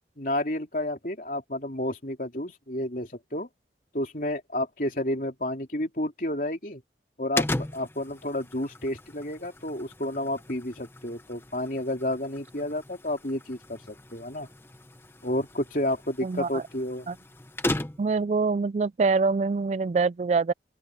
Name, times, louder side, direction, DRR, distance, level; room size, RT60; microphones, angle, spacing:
voice 1, 0.2-3.5 3.9-6.8 7.2-14.5 15.2-17.1, left 1 dB, 50° left, 3.7 m, -31 dB
sound 1, 7.4-18.2, left 1 dB, 15° left, 0.7 m, -37 dB
voice 2, 16.2-16.6 17.1-17.2 18.0-20.5, right 4 dB, 40° right, 0.3 m, -25 dB
open air
head